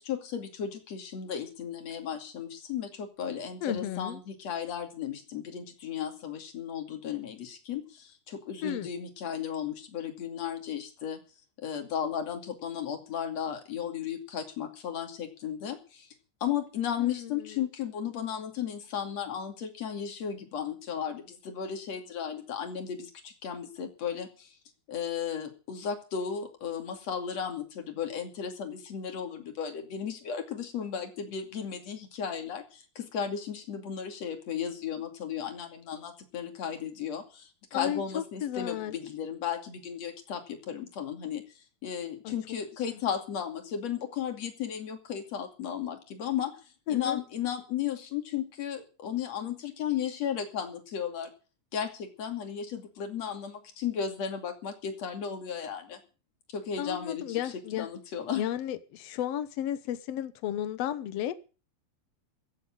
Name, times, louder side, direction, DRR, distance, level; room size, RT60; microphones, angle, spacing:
voice 1, 0.0-11.2 11.6-16.1 16.4-24.5 24.9-41.4 41.8-46.5 46.9-51.3 51.7-56.0 56.5-58.4, left 8 dB, 45° left, 5 dB, 3.4 m, -35 dB
voice 2, 3.6-4.2 8.6-8.9 17.0-17.5 37.7-38.9 42.2-42.3 42.9-43.0 46.9-47.2 56.8-57.9 58.4-61.3, left 11 dB, 75° left, 13 dB, 1.4 m, -33 dB
16.0 x 7.6 x 8.9 m, 0.36 s
omnidirectional pair, 4.4 m